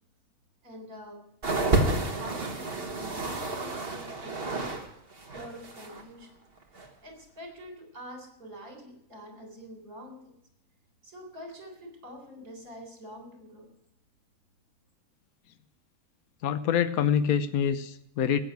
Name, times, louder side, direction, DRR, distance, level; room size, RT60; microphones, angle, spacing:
voice 1, 0.6-4.7 5.3-6.3 7.0-10.2 11.0-13.7, equal, 70° right, 3 dB, 4.3 m, -45 dB
sound 1, 1.4-4.9 5.1-6.0 6.8-6.9, right 2 dB, 40° right, 1.9 m, -30 dB
voice 2, 16.4-18.4, left 8 dB, 70° left, 10 dB, 1.2 m, -26 dB
15.0 x 9.0 x 9.3 m, 0.77 s
omnidirectional pair, 1.6 m